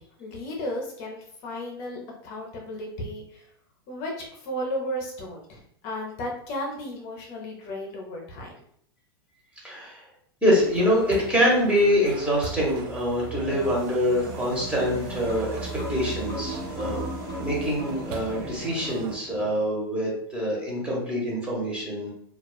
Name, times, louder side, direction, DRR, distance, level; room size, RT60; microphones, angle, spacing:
voice 1, 0.0-3.5 3.9-8.5, left 1 dB, 45° left, -1 dB, 0.6 m, -34 dB
voice 2, 9.6-10.0 10.4-17.0 17.4-22.1, equal, 10° right, -4 dB, 1.0 m, -25 dB
sound 1, 10.5-19.2, right 5 dB, 55° right, 0.4 m, -38 dB
sound 2, 13.3-19.6, left 1 dB, 25° left, 1.0 m, -38 dB
2.3 x 2.3 x 2.3 m, 0.67 s
hypercardioid pair, 115°, 13 cm